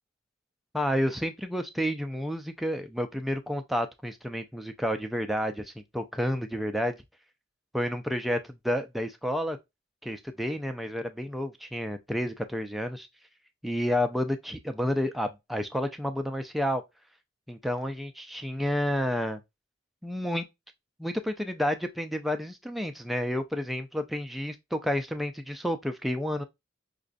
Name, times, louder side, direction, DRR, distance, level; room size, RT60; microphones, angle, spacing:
voice 1, 0.7-7.0 7.7-9.6 10.0-13.1 13.6-16.8 17.5-19.4 20.0-20.5 21.0-26.4, equal, ahead, 0.3 m, -30 dB
4.8 x 2.3 x 2.5 m
head